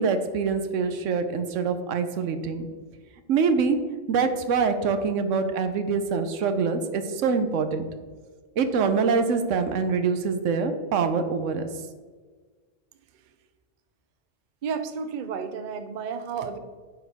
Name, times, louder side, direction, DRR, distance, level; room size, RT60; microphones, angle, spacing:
voice 1, 0.0-2.7 3.3-3.8 4.1-7.8 8.6-11.7, right 5 dB, 85° right, 9 dB, 1.0 m, -25 dB
voice 2, 14.6-16.6, right 6 dB, 55° right, 9 dB, 0.6 m, -32 dB
9.4 x 4.6 x 3.5 m, 1.5 s
omnidirectional pair, 1.3 m